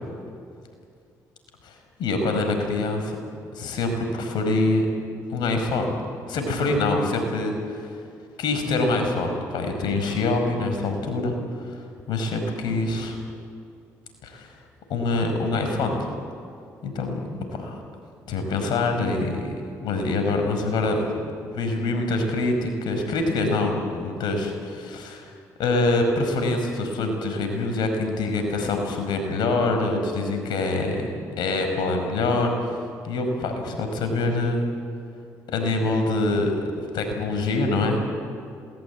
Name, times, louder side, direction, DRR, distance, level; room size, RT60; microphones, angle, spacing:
voice 1, 1.6-3.2 3.5-4.9 5.3-5.9 6.3-7.9 8.4-11.3 11.6-11.8 12.1-13.2 14.2-14.5 14.9-16.0 16.8-17.8 18.3-19.5 19.8-21.1 21.4-25.3 25.6-31.1 31.4-32.7 33.0-34.6 35.5-36.6 36.9-38.0, left 2 dB, 75° left, 5 dB, 5.2 m, -25 dB
27.0 x 20.0 x 8.4 m, 2.4 s
supercardioid pair, 55°, 8 cm